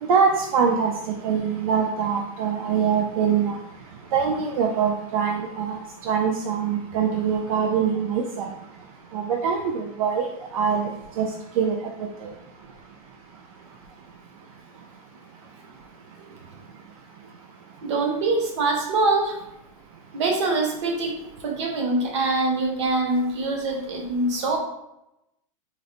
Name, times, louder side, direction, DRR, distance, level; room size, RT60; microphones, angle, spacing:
voice 1, 0.1-0.9 1.2-3.6 4.1-5.8 6.1-8.5 9.1-10.3 10.5-10.9 11.2-11.3 11.6-11.8 12.2-12.3, right 6 dB, 80° right, 2 dB, 0.4 m, -23 dB
voice 2, 17.8-19.4 20.1-24.6, right 2 dB, 55° right, 2 dB, 0.8 m, -24 dB
3.8 x 2.0 x 2.8 m, 0.88 s
supercardioid pair, 180°, 18 cm